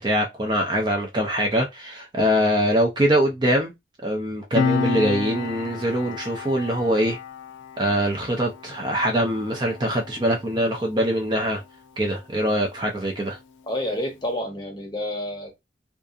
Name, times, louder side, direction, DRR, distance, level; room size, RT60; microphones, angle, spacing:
voice 1, 0.0-3.7 4.0-7.2 7.8-11.6 12.0-13.4, equal, 25° right, 0.4 m, -23 dB
Piano, 4.6-11.6 11.9-12.1, left 5 dB, 85° left, 0.4 m, -31 dB
voice 2, 13.7-15.5, left 1 dB, 25° left, 0.7 m, -29 dB
2.7 x 2.4 x 2.3 m
head